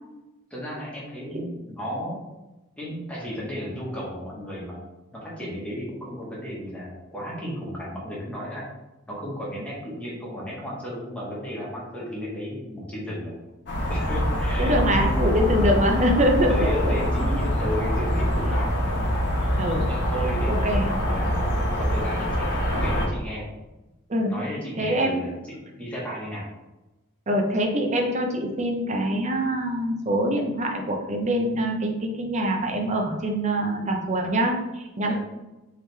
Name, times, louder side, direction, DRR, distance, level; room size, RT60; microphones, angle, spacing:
voice 1, 0.5-2.2 2.8-4.8 5.1-8.6 9.1-13.3 13.9-15.1 16.4-18.9 19.9-21.4 21.7-22.5 22.8-23.4 24.1-26.5 35.1-35.2, equal, 5° left, -6 dB, 1.2 m, -34 dB
sound 1, 13.7-23.1, equal, 55° left, 1.1 m, -24 dB
voice 2, 14.6-16.9 17.2-17.4 19.6-19.9 20.5-20.9 24.1-24.3 24.8-25.1 27.3-35.1, equal, 35° right, 2 dB, 0.6 m, -24 dB
4.7 x 3.2 x 3.3 m, 1.0 s
head